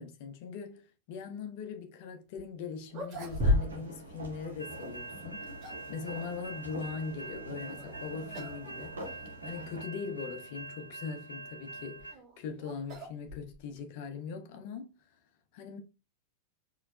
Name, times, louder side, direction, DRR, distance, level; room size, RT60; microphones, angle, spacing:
voice 1, 0.0-14.9 15.5-15.8, left 5 dB, 50° left, 0.9 m, -41 dB
sound 1, 2.4-2.5 2.9-4.4 5.2-5.9 7.7-8.0 8.3-8.6 8.9-9.0 9.8-9.9 11.7-13.8, left 1 dB, 35° right, 1.5 m, -33 dB
sound 2, 3.1-9.8, right 1 dB, 70° right, 1.4 m, -45 dB
sound 3, 4.6-12.1, right 3 dB, 90° right, 0.6 m, -45 dB
4.4 x 3.2 x 2.4 m
figure-of-eight pair, 90°, 0 cm